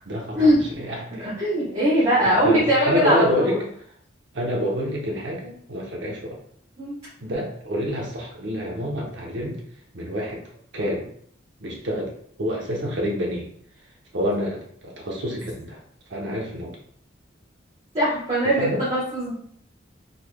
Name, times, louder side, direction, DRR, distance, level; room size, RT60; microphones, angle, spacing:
voice 1, 0.0-0.5 0.8-1.3 2.2-3.6 4.3-6.4 7.2-9.6 9.9-10.4 10.7-11.1 11.6-12.1 12.4-13.5 14.1-15.8 16.1-16.8 18.6-18.8, equal, 70° right, -1 dB, 0.8 m, -27 dB
voice 2, 1.2-3.6 6.8-6.9 17.9-19.3, equal, 30° right, -10 dB, 1.2 m, -21 dB
3.9 x 3.3 x 2.2 m, 0.65 s
head